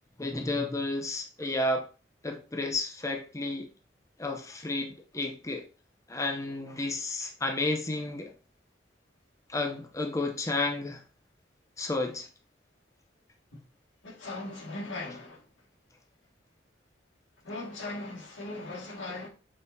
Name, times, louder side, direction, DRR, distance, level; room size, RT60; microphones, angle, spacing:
voice 1, 0.2-1.9 2.2-3.7 4.2-5.7 6.1-8.3 9.5-11.0 11.8-12.3, left 2 dB, 15° left, 0.6 m, -31 dB
voice 2, 14.0-15.4 17.4-19.3, left 2 dB, 90° left, 2.0 m, -38 dB
6.5 x 5.4 x 2.7 m
head